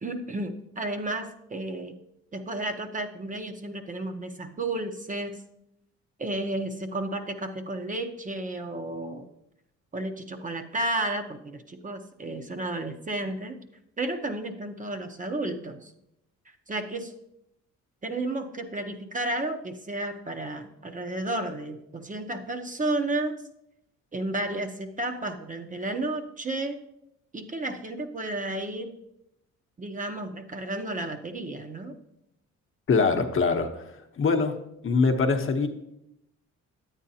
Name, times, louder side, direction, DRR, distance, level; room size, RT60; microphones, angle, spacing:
voice 1, 0.0-1.9 2.3-5.4 6.2-9.3 9.9-13.6 14.0-15.9 16.7-17.1 18.0-23.4 24.1-26.8 27.3-28.9 29.8-32.0, right 2 dB, 25° right, 6 dB, 0.8 m, -32 dB
voice 2, 32.9-33.8 34.2-35.7, left 4 dB, 45° left, 5 dB, 0.9 m, -23 dB
9.3 x 8.9 x 2.8 m, 0.81 s
cardioid pair, 90°, 30 cm